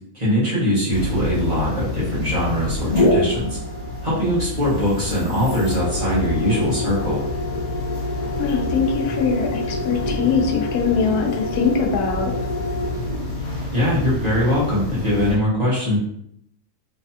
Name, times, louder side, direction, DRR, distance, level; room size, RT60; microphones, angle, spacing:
voice 1, 0.1-3.6 4.0-7.2 13.7-16.0, equal, 30° right, -9 dB, 1.5 m, -21 dB
sound 1, 0.9-15.3, left 1 dB, 45° left, 1.7 m, -26 dB
voice 2, 8.4-12.3, left 5 dB, 85° left, 3 dB, 1.1 m, -22 dB
3.2 x 3.2 x 2.8 m, 0.71 s
omnidirectional pair, 1.5 m